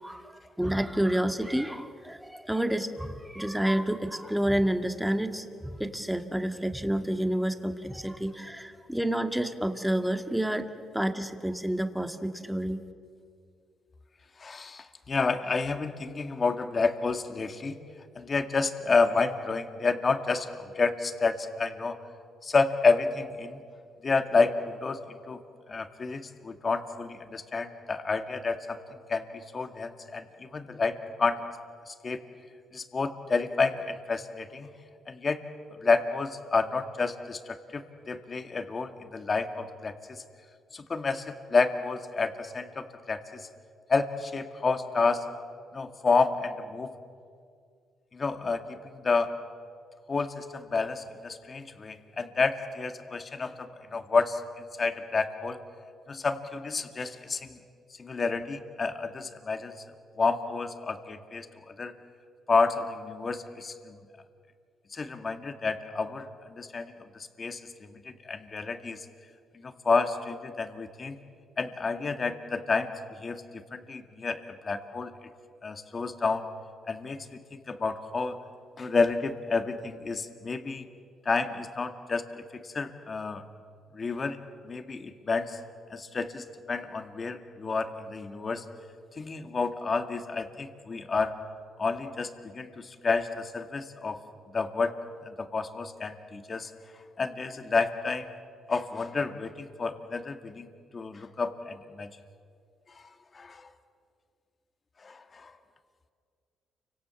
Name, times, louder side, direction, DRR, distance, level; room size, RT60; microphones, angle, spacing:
voice 1, 0.0-10.7 10.9-12.8, right 1 dB, 5° right, 6 dB, 2.0 m, -29 dB
voice 2, 14.4-17.8 18.2-22.0 22.4-23.6 24.0-25.4 25.7-28.8 29.1-31.4 31.9-32.2 32.7-34.7 35.1-35.4 35.7-40.2 40.7-43.5 43.9-45.3 45.7-46.9 48.1-49.3 50.1-55.6 56.1-57.6 58.0-59.7 60.2-61.9 62.5-64.0 64.9-69.1 69.5-71.2 71.6-75.1 75.6-76.4 76.9-78.4 78.8-80.9 81.2-83.4 83.9-84.4 84.6-85.6 85.9-88.7 89.1-91.4 91.8-94.2 94.5-95.0 95.2-96.7 97.2-98.3 98.7-102.1 102.9-103.0 103.3-103.7 105.0-105.5, left 4 dB, 35° left, 7 dB, 2.1 m, -30 dB
29.5 x 25.5 x 7.2 m, 2.2 s
cardioid pair, 90°, 0 cm